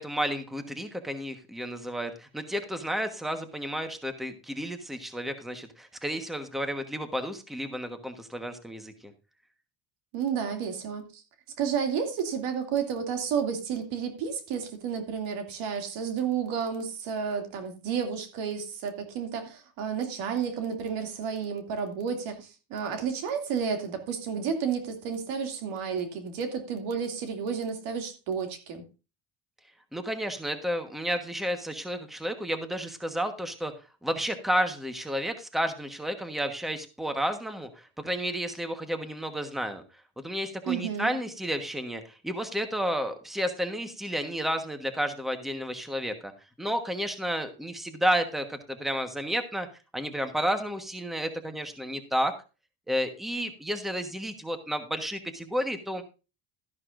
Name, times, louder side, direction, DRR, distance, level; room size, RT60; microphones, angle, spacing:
voice 1, 0.0-9.1 29.9-33.7 34.0-39.8 40.2-46.3 46.6-49.7 49.9-52.3 52.9-56.0, equal, ahead, 7 dB, 1.3 m, -31 dB
voice 2, 10.1-11.2 11.6-28.8 40.7-41.1, right 7 dB, 90° right, 5 dB, 2.7 m, -31 dB
13.0 x 11.0 x 2.6 m, 0.31 s
cardioid pair, 130°, 47 cm